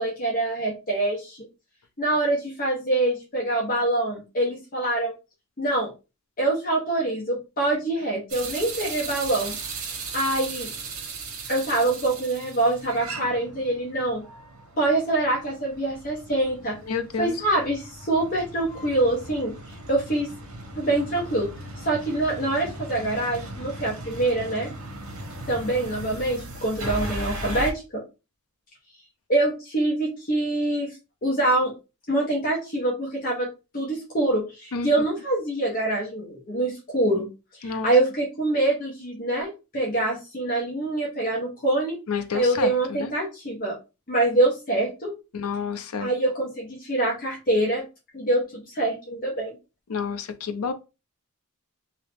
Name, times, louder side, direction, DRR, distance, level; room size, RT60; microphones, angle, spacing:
voice 1, 0.0-1.4 2.0-5.1 5.6-5.9 6.4-9.6 10.1-10.7 11.5-14.2 14.8-16.8 17.2-19.5 19.9-20.3 20.8-21.5 21.8-24.7 25.5-28.0 29.3-31.0 31.2-31.7 32.1-33.5 33.7-37.3 37.5-42.0 42.3-43.7 44.1-45.1 46.0-47.8 48.1-49.5, right 2 dB, 40° left, 1.0 m, -25 dB
sound 1, 8.3-27.7, right 2 dB, 70° right, 1.1 m, -37 dB
voice 2, 16.8-17.4 34.7-34.9 37.6-37.9 42.1-43.1 45.3-46.1 49.9-50.7, left 5 dB, 80° left, 0.5 m, -29 dB
2.8 x 2.8 x 3.4 m
head